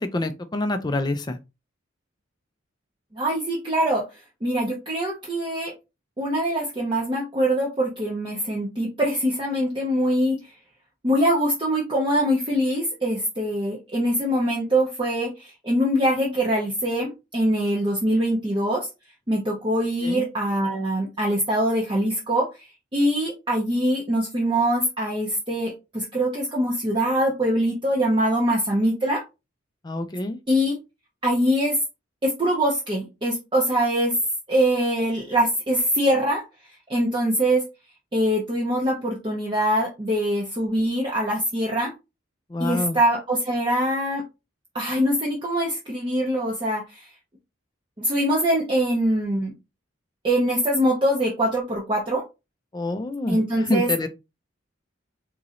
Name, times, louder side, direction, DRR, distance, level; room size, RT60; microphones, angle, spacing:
voice 1, 0.0-1.4 20.0-20.3 29.8-30.4 42.5-43.0 52.7-54.1, left 2 dB, 20° left, 0.4 m, -27 dB
voice 2, 3.1-4.0 4.4-5.7 6.2-10.5 11.0-18.9 19.3-22.7 22.9-29.2 30.5-30.8 31.2-31.8 32.2-34.1 34.5-36.4 36.9-37.6 38.1-41.9 42.6-44.2 44.7-47.1 48.0-49.5 50.2-52.2 53.3-53.9, right 1 dB, 25° right, 0.6 m, -23 dB
3.8 x 3.0 x 2.4 m
head